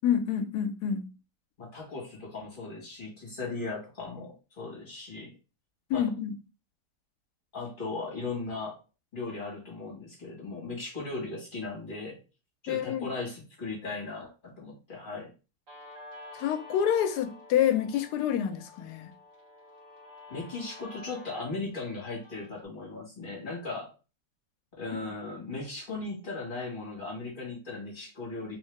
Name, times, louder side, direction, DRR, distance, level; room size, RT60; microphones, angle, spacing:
voice 1, 0.0-1.1 5.9-6.3 12.7-13.1 16.3-19.1 24.9-25.0, left 9 dB, 80° left, 1.1 m, -27 dB
voice 2, 1.6-5.3 5.9-6.1 7.5-8.8 9.1-12.2 12.6-15.3 20.3-23.9 24.8-28.6, left 3 dB, 35° left, 1.5 m, -37 dB
Guitar, 15.7-22.7, left 2 dB, 55° right, 2.0 m, -49 dB
3.4 x 2.7 x 3.2 m
omnidirectional pair, 1.7 m